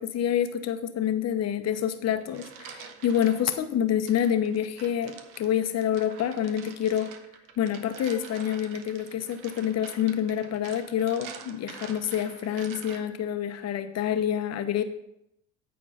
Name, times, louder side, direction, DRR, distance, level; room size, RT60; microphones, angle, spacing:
voice 1, 0.0-7.1 7.6-14.8, left 9 dB, 50° left, 9 dB, 0.9 m, -27 dB
sound 1, 2.0-3.6 4.1-13.3, right 7 dB, 65° right, 1.0 m, -46 dB
8.6 x 4.6 x 5.5 m, 0.81 s
supercardioid pair, 75°, 34 cm